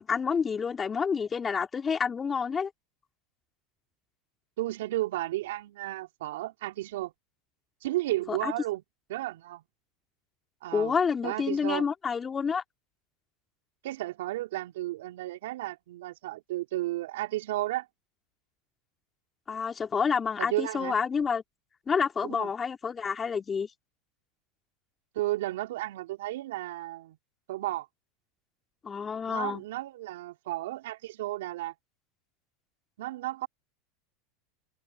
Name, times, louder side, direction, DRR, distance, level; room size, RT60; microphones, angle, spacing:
voice 1, 0.0-2.7 8.3-8.5 10.7-12.6 19.5-21.4 21.9-23.7 28.8-29.6, left 6 dB, 25° left, 2.8 m, -29 dB
voice 2, 4.6-7.1 7.8-8.8 9.1-9.6 10.6-10.9 11.2-11.8 13.8-17.9 20.4-21.0 22.2-22.5 25.1-27.2 27.5-27.9 29.3-31.7 33.0-33.5, right 16 dB, 75° right, 2.9 m, -33 dB
hypercardioid pair, 90°, 0 cm